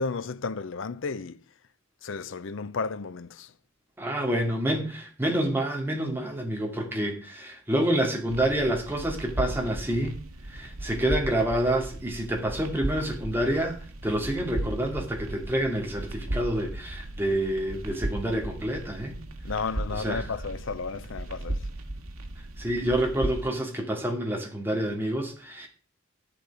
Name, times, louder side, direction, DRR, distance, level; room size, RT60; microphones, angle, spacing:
voice 1, 0.0-1.4 2.0-3.5 19.4-21.6, left 4 dB, 60° left, 0.5 m, -33 dB
voice 2, 4.0-10.2 10.5-19.2 19.9-20.3 22.6-25.7, right 1 dB, 10° right, 2.5 m, -28 dB
sound 1, 8.3-23.5, right 1 dB, 80° right, 2.1 m, -36 dB
12.0 x 11.0 x 4.9 m
head